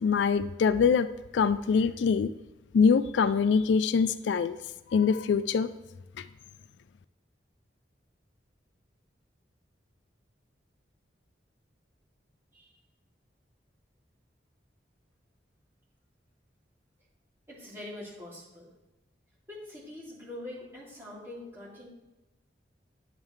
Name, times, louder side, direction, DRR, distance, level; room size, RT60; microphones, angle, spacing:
voice 1, 0.0-1.1 1.3-2.3 2.7-4.6 4.9-5.7 6.2-6.3, left 5 dB, 80° left, 14 dB, 0.3 m, -24 dB
voice 2, 17.5-18.7 19.5-21.9, left 1 dB, 15° right, -7 dB, 2.7 m, -43 dB
9.7 x 7.4 x 3.2 m, 1.0 s
head